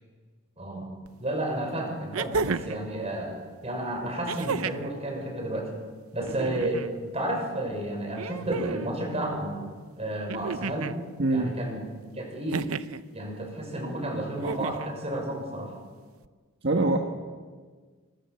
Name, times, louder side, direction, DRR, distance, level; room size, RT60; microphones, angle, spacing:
voice 1, 0.6-0.9 1.2-5.7 6.1-9.6 10.0-10.9 11.3-11.8 12.1-12.7 13.1-15.7, right 1 dB, 30° right, 2 dB, 6.2 m, -31 dB
sound 1, 1.1-1.2 2.1-2.8 4.3-4.9 6.2-6.9 8.1-8.9 10.3-11.0 12.5-13.0 14.3-14.9 16.2-16.3, right 4 dB, 85° right, 0.7 m, -32 dB
voice 2, 11.2-11.5 16.6-17.0, right 2 dB, 50° right, 3 dB, 1.6 m, -23 dB
25.0 x 24.0 x 6.9 m, 1.5 s
head